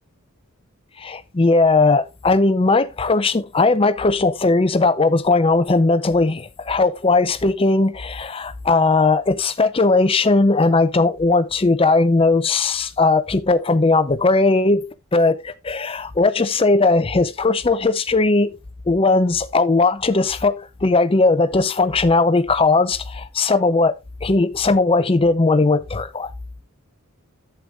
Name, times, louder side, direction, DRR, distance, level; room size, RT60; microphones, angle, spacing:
voice 1, 1.0-18.6 18.9-23.9 24.2-26.3, left 3 dB, 25° left, 0.5 m, -18 dB
11.0 x 7.9 x 2.4 m
head